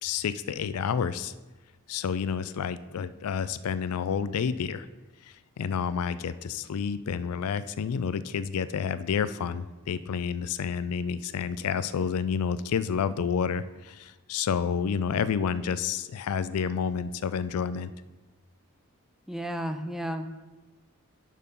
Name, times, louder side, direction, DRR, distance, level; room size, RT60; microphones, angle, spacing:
voice 1, 0.0-1.3 1.9-4.9 5.2-17.9, left 7 dB, 85° left, 14 dB, 0.4 m, -29 dB
voice 2, 19.3-20.4, equal, ahead, 7 dB, 0.4 m, -33 dB
6.4 x 5.3 x 5.4 m, 1.1 s
head